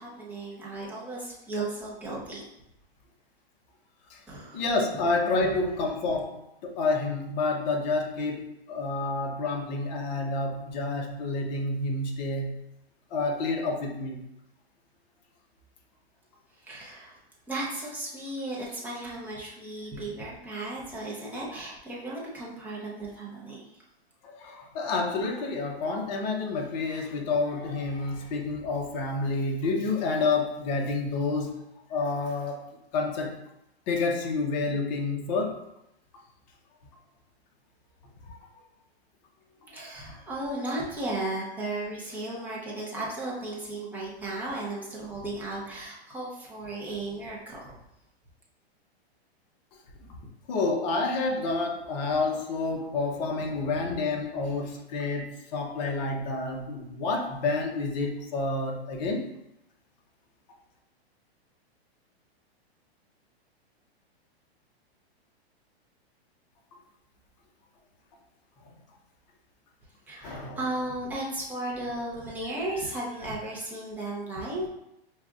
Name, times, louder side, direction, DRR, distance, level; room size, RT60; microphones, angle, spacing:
voice 1, 0.0-2.5 4.3-4.6 16.7-17.1 17.5-23.6 39.7-47.6 70.1-74.6, right 2 dB, 5° right, -5 dB, 0.7 m, -35 dB
voice 2, 4.5-12.6 13.1-14.2 24.2-31.6 31.9-32.6 32.9-33.4 33.9-35.6 38.3-38.4 39.7-39.9 50.5-59.2 70.2-70.6, left 3 dB, 40° left, 1 dB, 0.8 m, -29 dB
5.8 x 2.5 x 2.4 m, 0.83 s
hypercardioid pair, 145°, 32 cm